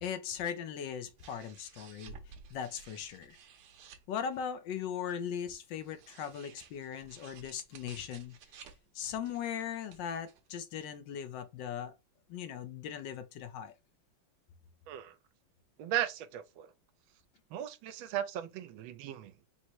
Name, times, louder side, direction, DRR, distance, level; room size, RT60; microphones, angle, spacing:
voice 1, 0.0-2.2 2.5-3.4 4.1-8.4 8.9-11.9 12.3-13.7, left 8 dB, 75° left, 1.3 m, -39 dB
sound 1, 1.2-4.5 5.5-10.5, right 6 dB, 65° right, 1.2 m, -55 dB
voice 2, 15.8-16.7 17.5-19.3, right 11 dB, 85° right, 1.4 m, -36 dB
4.1 x 2.1 x 4.5 m
omnidirectional pair, 2.2 m